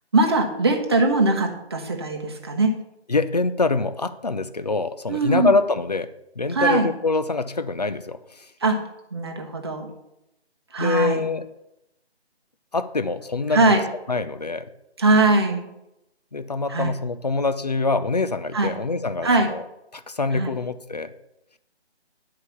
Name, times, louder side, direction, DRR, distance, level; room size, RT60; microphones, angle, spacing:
voice 1, 0.1-2.8 5.1-5.5 6.5-6.9 8.6-8.8 9.1-9.9 10.7-11.2 13.5-13.8 15.0-15.7 16.7-16.9 18.5-18.7 19.2-19.5 20.3-20.5, right 2 dB, 25° right, 3 dB, 1.0 m, -21 dB
voice 2, 3.1-6.1 6.4-8.5 10.8-11.5 12.7-13.7 14.1-14.7 16.3-19.6 19.9-21.1, left 3 dB, 40° left, 12 dB, 0.5 m, -25 dB
10.5 x 4.8 x 6.8 m, 0.86 s
figure-of-eight pair, 170°, 33 cm